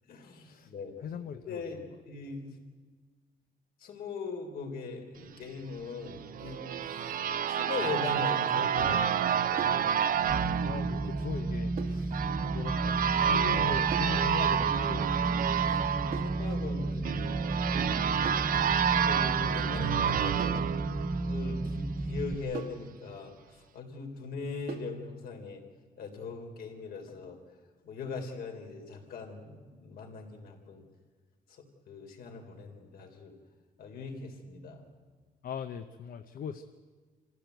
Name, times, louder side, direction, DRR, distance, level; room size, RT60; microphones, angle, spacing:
voice 1, 0.1-0.9 1.4-2.6 3.8-6.6 7.0-9.9 15.9-17.4 17.7-18.0 18.4-20.7 21.3-25.6 26.0-27.4 27.8-30.8 31.5-33.3 33.8-34.8, left 4 dB, 80° left, 2 dB, 3.8 m, -41 dB
voice 2, 1.0-1.8 10.6-12.2 12.5-15.1 35.4-36.7, left 8 dB, 65° left, 8 dB, 0.8 m, -40 dB
sound 1, 6.1-21.7, right 8 dB, 65° right, 0.7 m, -29 dB
sound 2, 9.6-9.9 11.8-12.1 13.9-14.2 16.1-16.4 18.3-18.6 20.4-20.7 22.5-22.9 24.7-25.0, right 6 dB, 85° right, 2.2 m, -40 dB
sound 3, 10.3-22.3, right 2 dB, 15° right, 0.6 m, -33 dB
26.5 x 15.0 x 8.0 m, 1.4 s
cardioid pair, 130°, 16 cm